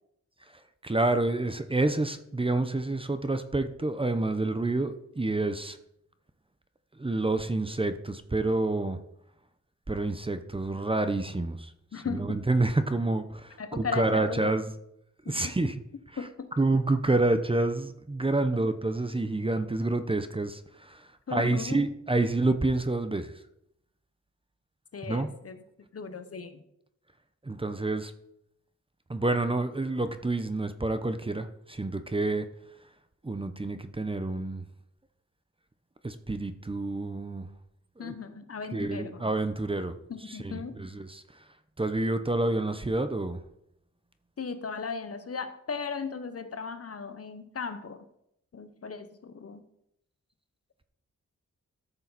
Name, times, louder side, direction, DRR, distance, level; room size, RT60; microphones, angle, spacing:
voice 1, 0.8-5.8 7.0-9.0 9.9-11.7 12.1-14.6 15.3-15.7 16.6-21.0 21.3-23.3 25.1-25.3 27.4-28.1 29.1-32.5 33.2-34.6 36.0-37.5 38.0-38.1 38.7-40.0 40.3-41.2 41.8-43.4, right 2 dB, 20° right, 10 dB, 0.7 m, -28 dB
voice 2, 11.9-12.4 13.6-14.4 15.2-15.7 16.2-16.5 21.3-21.8 24.9-25.6 25.9-26.6 38.0-39.2 40.1-40.8 44.4-48.0 48.5-49.6, left 5 dB, 55° left, 10 dB, 0.9 m, -37 dB
13.5 x 6.9 x 4.1 m, 0.78 s
wide cardioid pair, 100°, 29 cm